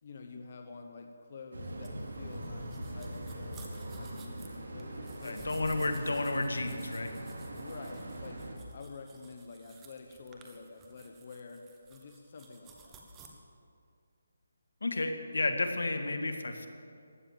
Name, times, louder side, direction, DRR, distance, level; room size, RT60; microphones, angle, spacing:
voice 1, 0.0-5.5 7.5-13.0, left 4 dB, 40° left, 4 dB, 1.1 m, -48 dB
sound 1, 1.5-8.5, right 1 dB, 70° right, 3.4 m, -42 dB
sound 2, 1.8-13.3, right 3 dB, 10° right, 1.2 m, -55 dB
voice 2, 5.2-7.1 14.8-16.7, left 2 dB, 85° left, 6 dB, 1.8 m, -32 dB
15.0 x 11.0 x 7.4 m, 2.4 s
hypercardioid pair, 170°, 0 cm